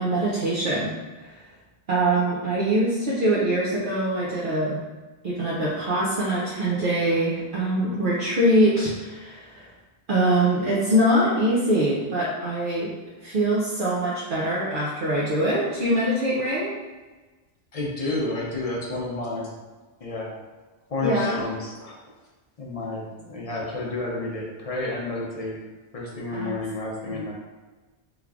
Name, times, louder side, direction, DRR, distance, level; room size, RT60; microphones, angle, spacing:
voice 1, 0.0-1.4 1.9-4.8 5.2-9.7 10.1-16.7 21.0-21.5 26.3-26.6 27.0-27.3, right 1 dB, 60° right, -7 dB, 0.7 m, -23 dB
voice 2, 17.7-19.5 20.0-20.3 20.9-21.9 22.6-25.5 25.9-27.3, left 2 dB, 45° left, -3 dB, 0.5 m, -30 dB
3.3 x 3.2 x 2.4 m, 1.3 s
omnidirectional pair, 1.1 m